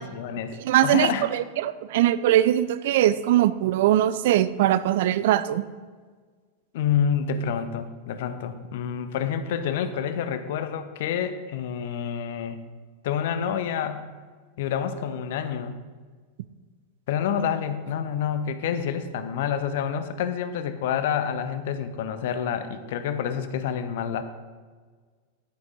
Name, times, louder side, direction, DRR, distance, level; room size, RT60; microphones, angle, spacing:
voice 1, 0.0-0.6 0.8-1.2 6.7-12.6 13.0-14.1 14.6-15.7 17.1-24.2, left 8 dB, 55° left, 11 dB, 0.7 m, -28 dB
voice 2, 0.6-5.6, right 12 dB, 55° right, 15 dB, 0.4 m, -21 dB
10.5 x 9.5 x 3.9 m, 1.5 s
figure-of-eight pair, 90°, 0 cm